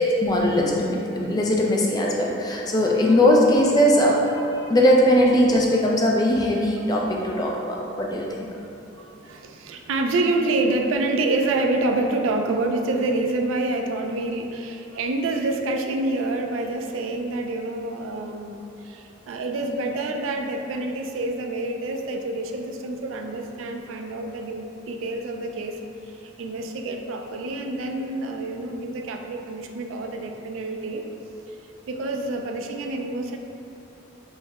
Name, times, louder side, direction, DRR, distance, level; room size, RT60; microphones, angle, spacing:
voice 1, 0.0-8.5, equal, 20° left, -2 dB, 0.4 m, -20 dB
voice 2, 8.9-31.0 31.5-31.6 31.9-33.4, right 2 dB, 80° right, 4 dB, 0.3 m, -27 dB
5.3 x 2.1 x 3.5 m, 2.7 s
head